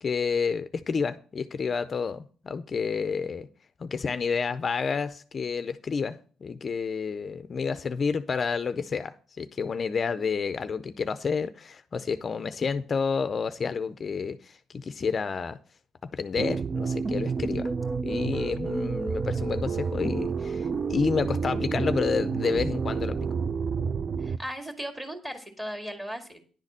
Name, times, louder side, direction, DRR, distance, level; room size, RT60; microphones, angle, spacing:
voice 1, 0.0-3.5 3.8-15.6 16.1-17.7 18.0-23.2, left 5 dB, 40° left, 0.5 m, -30 dB
sound 1, 16.4-24.4, right 5 dB, 40° right, 0.5 m, -29 dB
voice 2, 24.2-26.4, equal, 15° right, 2.1 m, -37 dB
10.5 x 4.1 x 7.3 m
cardioid pair, 90°, 0 cm